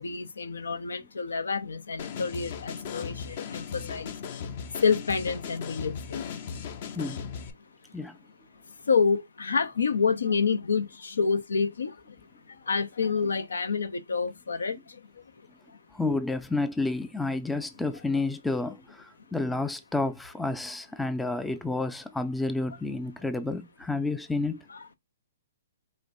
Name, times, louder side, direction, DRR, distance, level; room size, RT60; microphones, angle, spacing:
voice 1, 0.0-4.1 4.8-6.3 8.8-12.2 12.5-15.2 18.1-18.2 24.7-24.8, left 5 dB, 90° left, 0.6 m, -28 dB
sound 1, 2.0-7.5, left 6 dB, 50° left, 0.6 m, -37 dB
voice 2, 15.9-24.6, left 3 dB, 5° left, 0.3 m, -30 dB
5.0 x 2.6 x 2.6 m
hypercardioid pair, 145°, 0 cm